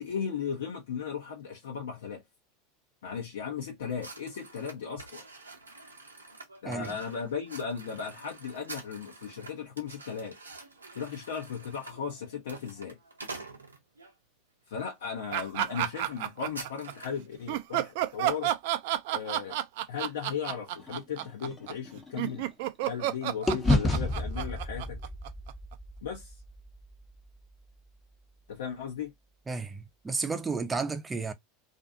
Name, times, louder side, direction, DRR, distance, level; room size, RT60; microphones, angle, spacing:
voice 1, 0.0-2.2 3.0-5.2 6.6-10.4 10.9-13.0 14.7-18.5 19.1-19.6 19.9-22.5 22.9-25.0 26.0-26.3 28.5-29.1, left 7 dB, 70° left, 0.8 m, -36 dB
sound 1, 4.0-14.1 14.8-15.0 15.3-15.5 15.8-17.3, right 3 dB, 90° right, 0.7 m, -47 dB
voice 2, 6.7-7.0 29.5-31.3, right 4 dB, 15° right, 0.6 m, -32 dB
sound 2, 15.3-16.9 17.5-25.7, right 13 dB, 60° right, 0.4 m, -31 dB
sound 3, 20.8-23.1 23.5-27.7, left 2 dB, 15° left, 0.9 m, -32 dB
2.6 x 2.4 x 2.5 m
hypercardioid pair, 85°, 0 cm